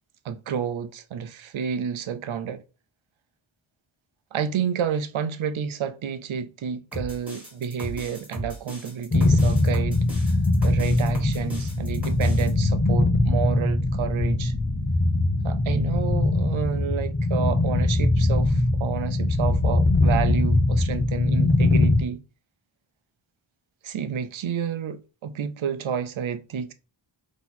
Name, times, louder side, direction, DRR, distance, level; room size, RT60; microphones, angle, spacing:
voice 1, 0.2-2.6 4.3-10.4 10.6-14.5 15.4-22.2 23.8-26.7, right 7 dB, 90° right, 0.6 m, -30 dB
sound 1, 6.9-12.5, right 1 dB, 5° right, 1.9 m, -36 dB
sound 2, 9.1-22.0, left 2 dB, 25° left, 0.5 m, -22 dB
3.9 x 3.0 x 4.1 m
wide cardioid pair, 100°, 46 cm